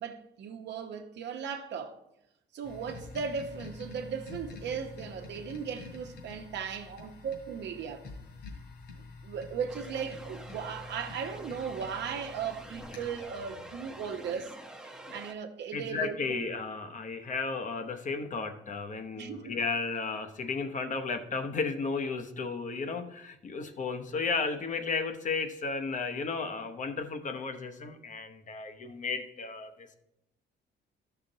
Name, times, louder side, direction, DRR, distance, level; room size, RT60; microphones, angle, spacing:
voice 1, 0.0-2.0 2.5-8.0 9.2-14.6 15.1-16.5 19.2-19.6, right 6 dB, 70° right, 0.9 m, -37 dB
sound 1, 2.6-14.4, left 4 dB, 70° left, 2.9 m, -47 dB
sound 2, 9.7-15.3, right 1 dB, 5° right, 0.8 m, -47 dB
voice 2, 15.7-29.9, left 4 dB, 45° left, 0.9 m, -34 dB
13.0 x 5.8 x 3.9 m
cardioid pair, 120°, 19 cm